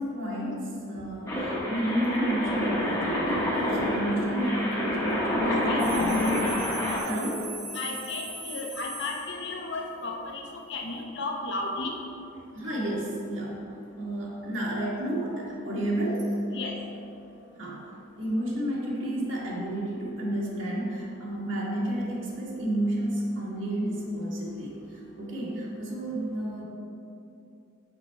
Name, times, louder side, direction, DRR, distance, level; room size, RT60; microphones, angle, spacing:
voice 1, 0.0-6.6 7.0-7.5 12.5-13.7 14.0-16.4 17.6-17.8 18.2-24.7 25.2-26.6, right 1 dB, 65° right, -5 dB, 1.5 m, -31 dB
sound 1, 1.3-7.0, left 1 dB, 15° left, 1.0 m, -27 dB
voice 2, 5.4-6.1 7.7-10.4 10.7-11.9 16.5-16.8, left 2 dB, 55° left, 1 dB, 0.8 m, -34 dB
sound 2, 5.8-9.8, right 1 dB, 30° right, 0.7 m, -40 dB
6.0 x 5.8 x 4.4 m, 2.7 s
head